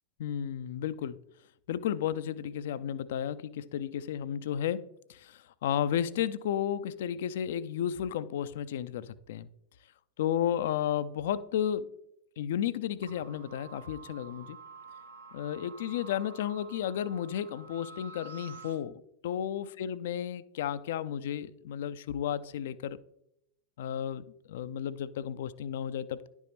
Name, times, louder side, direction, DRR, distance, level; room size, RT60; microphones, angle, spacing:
voice 1, 0.2-1.2 1.7-9.5 10.2-11.9 12.4-14.6 15.3-23.0 23.8-26.3, left 9 dB, 55° left, 0.4 m, -33 dB
sound 1, 13.0-18.8, right 4 dB, 75° right, 1.0 m, -49 dB
10.5 x 5.3 x 3.1 m
figure-of-eight pair, 90°, 0 cm